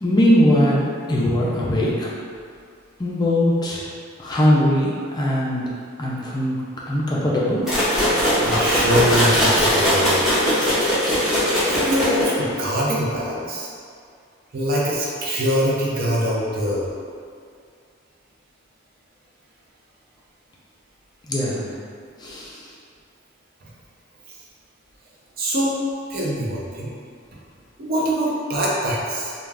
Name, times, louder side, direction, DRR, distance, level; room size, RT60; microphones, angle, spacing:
voice 1, 0.0-2.1 3.0-3.8 4.2-5.6 6.0-6.6 6.9-7.7 21.3-21.7 22.2-22.6, left 1 dB, 20° left, -5 dB, 0.3 m, -20 dB
sound 1, 7.7-12.5, equal, ahead, 0.7 m, -20 dB
voice 2, 8.4-10.2 11.7-13.7 14.5-16.9 23.6-23.7 25.4-25.8 26.1-26.9 27.8-29.3, equal, 50° right, -5 dB, 0.5 m, -23 dB
2.3 x 2.2 x 3.3 m, 2.2 s
head